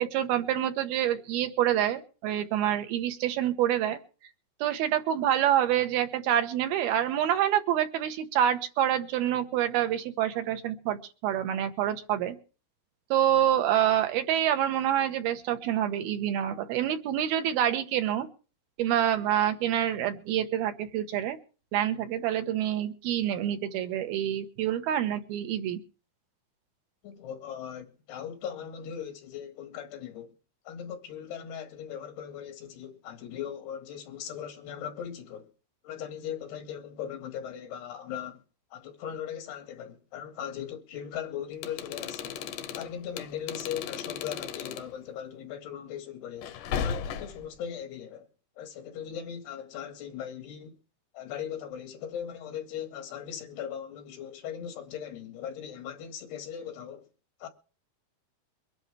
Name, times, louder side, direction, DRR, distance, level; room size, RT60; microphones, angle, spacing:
voice 1, 0.0-4.0 4.6-12.4 13.1-18.3 18.8-21.4 21.7-25.8, right 11 dB, 75° right, 3.0 m, -27 dB
voice 2, 27.0-30.3 30.7-35.5 35.8-38.4 38.7-42.4 42.7-46.5 46.8-48.3 48.6-50.8 51.1-57.1 57.4-57.5, left 9 dB, 90° left, 4.0 m, -39 dB
sound 1, 41.5-44.9 46.4-47.5, left 7 dB, 70° left, 2.1 m, -35 dB
23.5 x 10.5 x 3.4 m
omnidirectional pair, 4.5 m